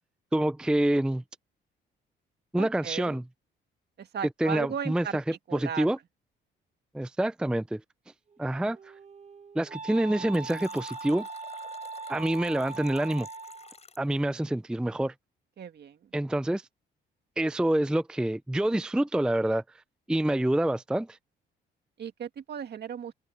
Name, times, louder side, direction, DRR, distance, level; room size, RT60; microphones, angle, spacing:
voice 1, 0.3-1.2 2.5-3.2 4.4-5.2 5.5-6.0 6.9-7.8 8.4-8.8 9.6-11.3 12.1-13.3 14.0-15.1 16.1-16.6 17.4-19.6 20.1-21.2, right 1 dB, 5° right, 0.4 m, -27 dB
voice 2, 2.6-3.2 4.0-5.2 5.5-5.9 15.6-16.1 22.0-23.1, right 8 dB, 55° right, 2.2 m, -36 dB
Wind instrument woodwind instrument, 8.3-13.8, right 4 dB, 35° right, 1.3 m, -41 dB
Fill (with liquid), 10.3-14.2, left 4 dB, 30° left, 6.3 m, -51 dB
open air
cardioid pair, 90°, 20 cm